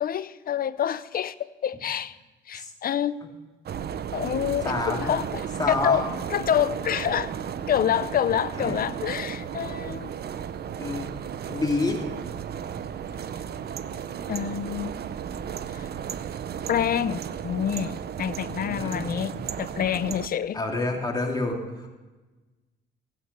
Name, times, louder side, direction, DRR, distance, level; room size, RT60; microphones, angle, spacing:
voice 1, 0.0-2.2 2.5-3.2 4.1-6.0 6.3-7.3 7.7-10.1 14.3-14.9 15.7-15.9 16.7-19.3 19.6-20.6, left 9 dB, 45° left, 0.6 m, -27 dB
sound 1, 3.7-20.3, right 8 dB, 55° right, 0.7 m, -34 dB
voice 2, 4.6-5.1 5.6-6.0 8.6-8.8 9.7-9.8 10.8-11.1 11.5-12.2 18.4-19.4 20.5-21.9, left 2 dB, 20° left, 2.6 m, -29 dB
15.5 x 8.5 x 6.7 m
cardioid pair, 90°, 20 cm